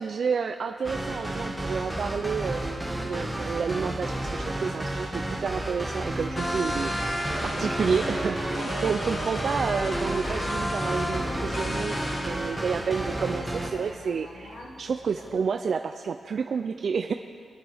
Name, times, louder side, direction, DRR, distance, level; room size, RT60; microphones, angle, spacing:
voice 1, 0.0-7.1 7.4-17.1, right 6 dB, 60° right, 7 dB, 0.4 m, -30 dB
sound 1, 0.8-13.7, right 1 dB, 10° right, 1.6 m, -32 dB
sound 2, 6.4-12.3, equal, 40° left, 1.7 m, -32 dB
sound 3, 10.4-15.4, left 2 dB, 80° left, 2.0 m, -45 dB
24.5 x 8.7 x 3.5 m, 2.3 s
cardioid pair, 95°, 0 cm